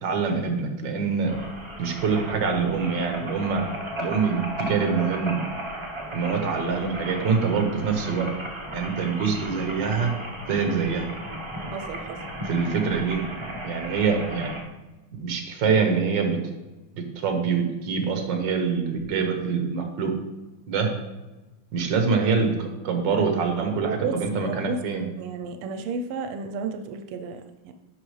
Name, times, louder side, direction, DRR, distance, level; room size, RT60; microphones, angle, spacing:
voice 1, 0.0-1.4 1.8-3.7 4.0-5.4 6.1-8.3 8.7-10.1 10.5-11.1 12.5-13.2 13.6-14.5 15.1-16.4 17.0-20.2 20.7-20.9 21.7-25.1, right 5 dB, 60° right, 4 dB, 1.7 m, -25 dB
sound 1, 1.3-14.6, right 1 dB, 45° right, 0.3 m, -35 dB
voice 2, 11.7-12.3 23.8-27.7, right 5 dB, 90° right, 7 dB, 1.5 m, -33 dB
11.0 x 5.5 x 3.2 m, 1.1 s
omnidirectional pair, 2.4 m